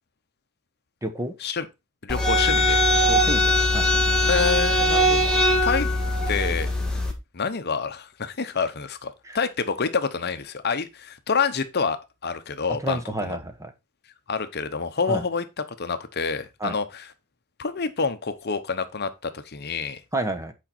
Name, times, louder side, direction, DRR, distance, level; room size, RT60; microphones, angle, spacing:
voice 1, 1.0-1.3 3.1-3.9 9.2-9.4 12.8-13.7 15.1-15.2 16.6-16.8 20.1-20.5, right 1 dB, 15° right, 1.1 m, -30 dB
voice 2, 2.0-2.8 4.3-5.2 5.6-5.9 6.3-6.7 7.3-13.0 13.3-13.4 14.3-15.4 15.8-17.1 17.6-20.0, left 5 dB, 50° left, 0.9 m, -27 dB
sound 1, 2.1-7.1, left 1 dB, 5° left, 1.7 m, -21 dB
8.8 x 5.1 x 4.3 m
head